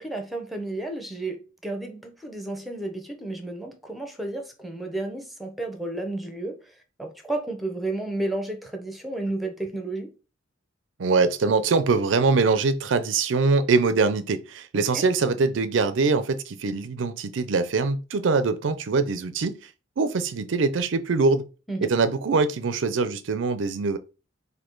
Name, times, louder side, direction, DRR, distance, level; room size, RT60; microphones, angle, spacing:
voice 1, 0.0-6.6 7.0-10.1 14.7-15.0 21.7-21.9, right 2 dB, ahead, 0.8 m, -32 dB
voice 2, 11.0-19.7 20.0-21.4 21.8-24.0, right 4 dB, 70° right, 0.5 m, -23 dB
4.2 x 2.7 x 4.5 m
head